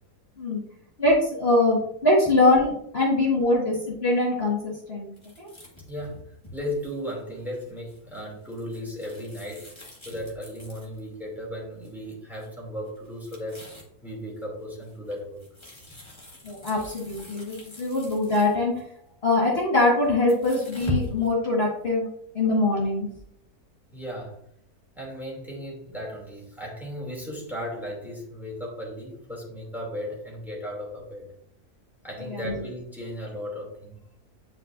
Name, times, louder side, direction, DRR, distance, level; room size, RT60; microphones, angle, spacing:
voice 1, 1.0-5.1 5.4-5.5 16.4-18.7 19.2-22.1 22.3-23.1 32.3-32.6, left 2 dB, 40° left, -4 dB, 1.9 m, -23 dB
sound 1, 5.2-11.2 11.8-12.1 12.4-12.5 12.8-13.9 14.4-18.8 19.7-21.3, left 1 dB, 20° left, 1.8 m, -40 dB
voice 2, 5.9-6.2 6.5-9.7 10.0-13.7 14.0-15.4 15.7-15.9 19.0-19.1 23.9-24.4 24.9-31.3 32.0-34.0, equal, ahead, -3 dB, 2.6 m, -36 dB
9.6 x 5.4 x 2.6 m, 0.69 s
omnidirectional pair, 1.6 m